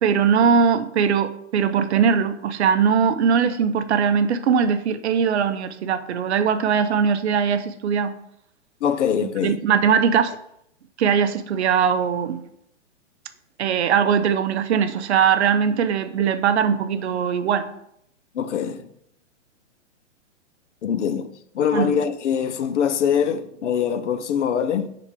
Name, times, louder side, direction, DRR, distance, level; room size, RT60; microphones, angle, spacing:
voice 1, 0.0-8.2 9.4-10.3 11.0-12.4 13.6-17.7 21.7-21.9, right 7 dB, 60° right, 0.6 m, -20 dB
voice 2, 8.8-9.6 18.3-18.9 20.8-21.3 21.5-25.0, left 8 dB, 70° left, 0.6 m, -23 dB
5.1 x 3.8 x 4.9 m
hypercardioid pair, 150°, 37 cm